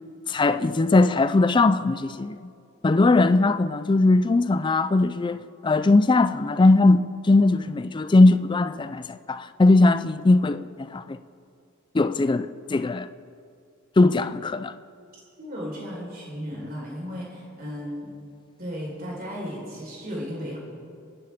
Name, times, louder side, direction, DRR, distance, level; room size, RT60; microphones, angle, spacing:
voice 1, 0.3-2.4 2.8-11.2 11.9-13.1 14.0-14.7, left 2 dB, 20° left, 0.3 m, -20 dB
voice 2, 15.4-18.1 18.6-20.6, equal, 45° right, 4.3 m, -35 dB
29.5 x 10.0 x 3.6 m
head